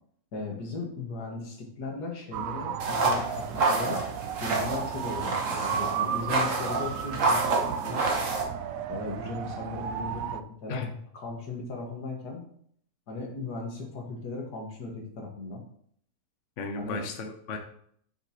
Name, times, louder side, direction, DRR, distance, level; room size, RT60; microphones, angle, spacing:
voice 1, 0.3-4.0 4.4-8.0 8.9-10.9 11.1-12.5 13.1-15.6 16.8-17.0, left 3 dB, 75° left, 1 dB, 2.2 m, -37 dB
sound 1, 2.3-10.4, right 8 dB, 70° right, 0.9 m, -34 dB
sound 2, 2.8-8.4, right 3 dB, 55° right, 1.5 m, -28 dB
voice 2, 16.6-17.6, left 4 dB, 55° left, 4 dB, 1.1 m, -34 dB
9.0 x 6.0 x 3.0 m, 0.63 s
omnidirectional pair, 1.7 m